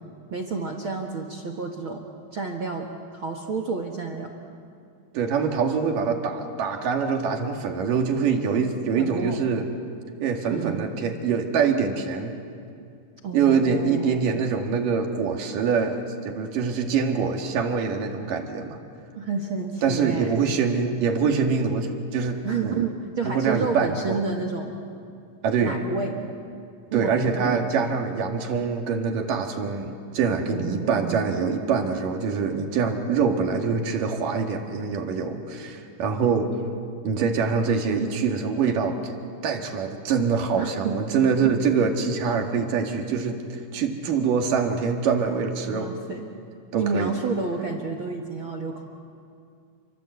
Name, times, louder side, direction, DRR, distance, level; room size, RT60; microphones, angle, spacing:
voice 1, 0.3-2.0 2.3-4.3 9.0-9.4 10.5-10.9 13.2-14.2 19.1-20.3 22.4-24.7 25.6-26.1 26.9-27.6 30.5-31.3 40.6-41.6 45.7-46.3 46.7-48.8, right 4 dB, 50° right, 4 dB, 1.7 m, -30 dB
voice 2, 5.1-9.7 10.2-12.4 13.3-18.8 19.8-22.9 23.2-24.2 25.4-25.8 26.9-36.5 37.0-39.2 39.4-45.9 46.7-47.1, right 5 dB, 65° right, 3 dB, 3.5 m, -24 dB
29.5 x 24.5 x 8.1 m, 2.4 s
omnidirectional pair, 4.2 m